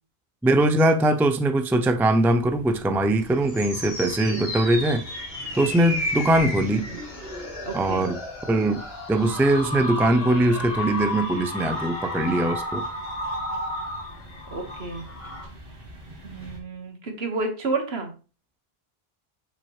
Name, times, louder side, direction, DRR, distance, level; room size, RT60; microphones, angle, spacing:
voice 1, 0.4-5.1 5.5-6.9 7.7-8.2 8.5-8.8 9.1-12.8, right 1 dB, 5° right, 0.3 m, -21 dB
sound 1, 2.2-16.6, equal, 65° right, 2.0 m, -47 dB
sound 2, 3.1-15.5, left 1 dB, 70° left, 2.3 m, -32 dB
voice 2, 4.0-4.4 7.6-8.1 14.5-15.0 16.2-18.1, right 3 dB, 80° right, 1.7 m, -30 dB
6.7 x 5.8 x 3.1 m
omnidirectional pair, 1.0 m